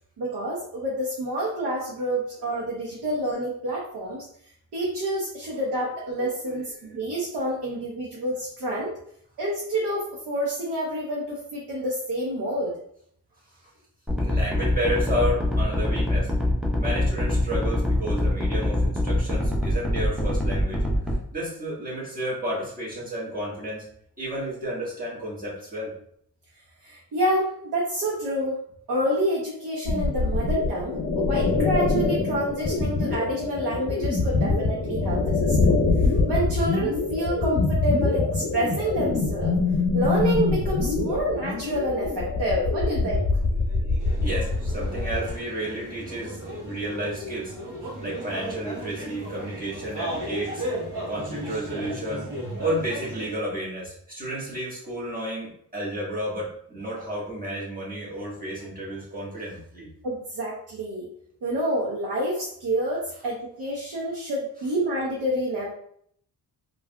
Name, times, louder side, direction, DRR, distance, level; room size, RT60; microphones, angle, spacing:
voice 1, 0.2-4.3 4.7-8.9 9.4-12.7 26.8-28.6 28.9-35.7 36.0-39.6 39.9-43.2 60.0-61.1 61.4-65.7, right 1 dB, 65° right, -4 dB, 0.9 m, -28 dB
voice 2, 6.4-6.9 14.1-16.3 16.8-20.8 21.3-23.8 24.2-25.9 43.7-47.5 48.0-50.6 51.1-52.3 52.6-59.9, equal, 20° right, -6 dB, 1.5 m, -32 dB
sound 1, 14.1-21.2, left 1 dB, ahead, 0.7 m, -24 dB
sound 2, 29.8-45.3, left 3 dB, 40° left, 0.7 m, -24 dB
sound 3, 44.0-53.3, right 1 dB, 50° right, 1.2 m, -35 dB
3.4 x 2.4 x 2.2 m, 0.67 s
cardioid pair, 65°, 41 cm